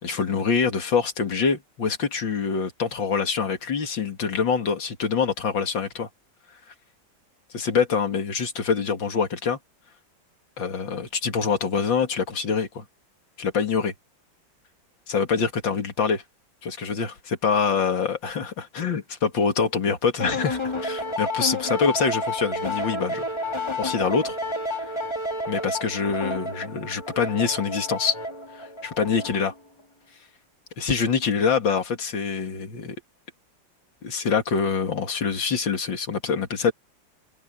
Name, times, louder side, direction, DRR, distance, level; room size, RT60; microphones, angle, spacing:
voice 1, 0.0-6.1 7.5-9.6 10.6-12.8 13.4-13.9 15.1-16.2 16.6-23.3 23.8-24.4 24.7-24.9 25.5-28.2 28.5-29.5 30.8-33.0 34.0-36.7, left 5 dB, 80° left, 3.0 m, -25 dB
sound 1, 20.2-29.6, left 1 dB, 15° left, 1.4 m, -30 dB
omnidirectional pair, 2.0 m